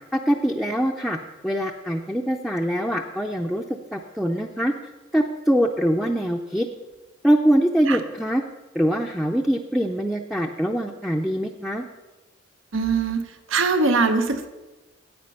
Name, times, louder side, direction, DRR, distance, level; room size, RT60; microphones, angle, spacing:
voice 1, 0.1-1.2 1.4-3.6 3.9-4.7 5.1-6.7 7.2-8.4 8.7-11.9, equal, ahead, 0 dB, 0.4 m, -23 dB
voice 2, 12.7-13.2 13.5-14.5, right 4 dB, 85° right, 9 dB, 0.9 m, -21 dB
9.5 x 8.4 x 5.5 m, 1.1 s
head